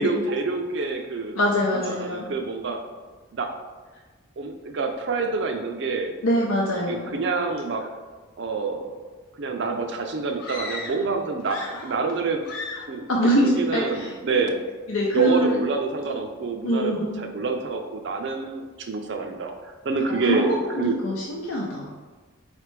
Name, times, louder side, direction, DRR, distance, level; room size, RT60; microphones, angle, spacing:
voice 1, 0.0-1.4 1.7-2.8 3.3-3.5 4.4-6.1 6.9-7.8 8.4-9.0 9.4-12.4 12.9-13.1 13.4-14.6 15.1-21.0, right 4 dB, 55° right, 4 dB, 0.5 m, -27 dB
voice 2, 1.3-2.3 6.2-7.2 13.1-14.1 14.3-14.4 14.9-15.5 16.6-17.2 20.2-21.9, equal, 90° left, -3 dB, 0.6 m, -24 dB
sound 1, 10.4-11.1 11.4-12.2 12.4-13.0, left 2 dB, 45° left, 1.0 m, -36 dB
4.2 x 3.2 x 3.2 m, 1.3 s
head